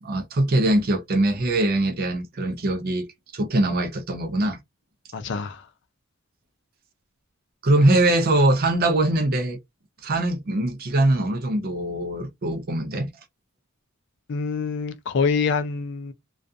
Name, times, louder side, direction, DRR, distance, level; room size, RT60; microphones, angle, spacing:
voice 1, 0.0-3.1 3.3-4.6 7.6-9.6 10.0-13.1, right 1 dB, 45° right, 0.5 m, -22 dB
voice 2, 5.1-5.6 14.3-16.1, left 5 dB, 60° left, 0.4 m, -25 dB
2.3 x 2.3 x 2.6 m
head